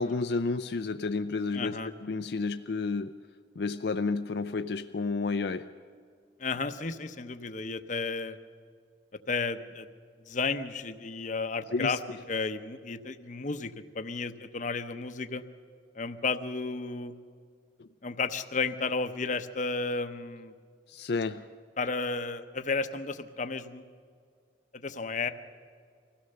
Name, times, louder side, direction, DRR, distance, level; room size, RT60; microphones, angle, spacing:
voice 1, 0.0-3.1 3.6-5.7 11.7-12.0 17.8-17.9 20.9-21.4, left 3 dB, 60° left, 9 dB, 0.5 m, -31 dB
voice 2, 1.5-1.9 6.4-8.4 9.3-9.9 10.3-12.0 12.3-15.4 16.0-17.1 18.0-20.5 21.8-23.8 24.8-25.3, left 4 dB, 40° left, 9 dB, 0.8 m, -33 dB
24.5 x 16.0 x 6.7 m, 2.1 s
head